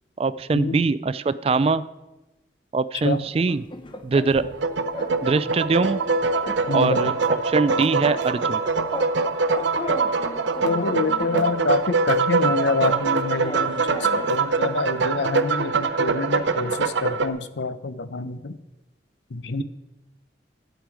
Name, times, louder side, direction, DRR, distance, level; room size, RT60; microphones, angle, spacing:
voice 1, 0.2-1.8 2.7-3.7 4.0-4.4 5.2-6.0 6.7-8.6, right 4 dB, 35° right, 15 dB, 0.3 m, -22 dB
sound 1, 3.2-4.6 4.9-5.2 5.4-7.3 7.6-9.2 9.4-11.6 12.4-14.4, left 1 dB, 25° left, 0.7 m, -36 dB
sound 2, 4.4-17.3, right 4 dB, 80° right, 0.6 m, -23 dB
voice 2, 6.7-7.1 10.6-18.6 19.3-19.6, left 3 dB, 70° left, 13 dB, 0.6 m, -27 dB
11.5 x 8.0 x 4.7 m, 1.0 s
head